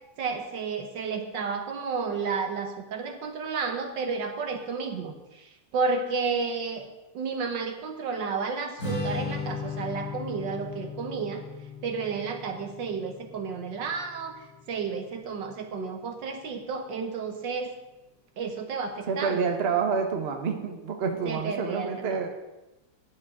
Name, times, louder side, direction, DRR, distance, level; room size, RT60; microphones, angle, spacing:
voice 1, 0.2-6.8 7.1-11.4 11.8-17.7 18.4-19.5 21.3-22.2, right 5 dB, 65° right, 5 dB, 1.7 m, -32 dB
Strum, 8.8-15.1, left 3 dB, 45° left, 5.9 m, -36 dB
voice 2, 19.1-22.3, right 5 dB, 40° right, 4 dB, 1.1 m, -28 dB
14.0 x 10.0 x 3.7 m, 1.0 s
omnidirectional pair, 2.2 m